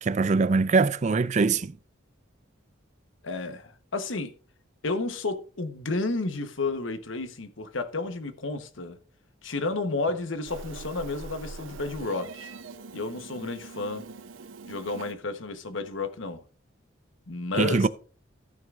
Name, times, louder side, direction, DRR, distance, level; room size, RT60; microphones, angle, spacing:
voice 1, 0.0-1.7 17.6-17.9, right 4 dB, 35° right, 0.4 m, -22 dB
voice 2, 3.2-4.3 4.8-9.0 9.4-12.5 12.9-14.0 14.7-16.4 17.3-17.9, left 3 dB, 80° left, 1.1 m, -31 dB
Meow, 10.5-15.1, right 4 dB, 85° right, 0.7 m, -42 dB
14.5 x 9.2 x 2.5 m
head